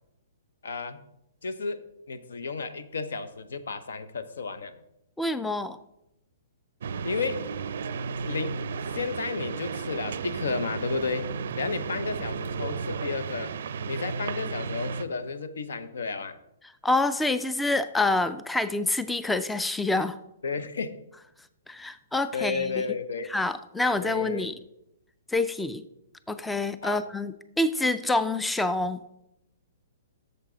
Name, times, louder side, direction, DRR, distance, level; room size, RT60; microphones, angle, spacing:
voice 1, 0.6-1.0 1.4-4.7 7.0-7.4 8.2-8.6 8.9-13.5 13.9-16.4 20.4-21.0 22.3-23.3 24.0-24.5 26.8-27.0, left 4 dB, 80° left, 12 dB, 0.7 m, -32 dB
voice 2, 5.2-5.8 16.8-20.2 21.7-22.8 23.3-24.5 25.3-25.8 26.3-29.0, left 2 dB, 5° left, 12 dB, 0.3 m, -27 dB
sound 1, 6.8-15.0, right 5 dB, 70° right, 0.4 m, -33 dB
8.2 x 6.8 x 3.8 m, 0.84 s
hypercardioid pair, 140°, 0 cm